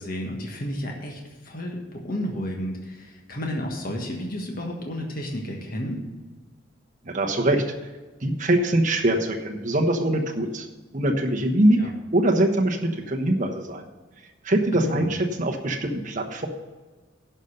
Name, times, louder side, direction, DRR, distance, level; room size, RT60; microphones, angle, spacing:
voice 1, 0.0-6.0 11.8-11.9 14.7-15.1, equal, 45° left, 0 dB, 1.5 m, -32 dB
voice 2, 7.0-7.6 8.2-10.7 10.9-11.8 12.1-12.8 13.1-13.8 14.4-16.5, right 1 dB, 40° right, 3 dB, 1.1 m, -23 dB
11.5 x 5.4 x 6.7 m, 1.3 s
head